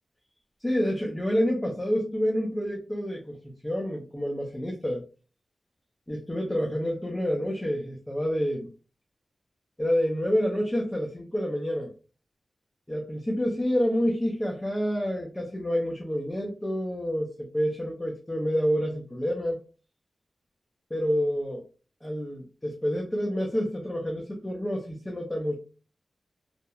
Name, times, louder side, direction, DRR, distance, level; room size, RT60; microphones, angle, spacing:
voice 1, 0.6-3.4 3.6-5.0 6.1-8.7 9.8-11.9 12.9-19.6 20.9-21.6 22.0-25.6, equal, 10° left, -1 dB, 0.5 m, -28 dB
2.8 x 2.1 x 2.3 m, 0.35 s
wide cardioid pair, 145°, 0 cm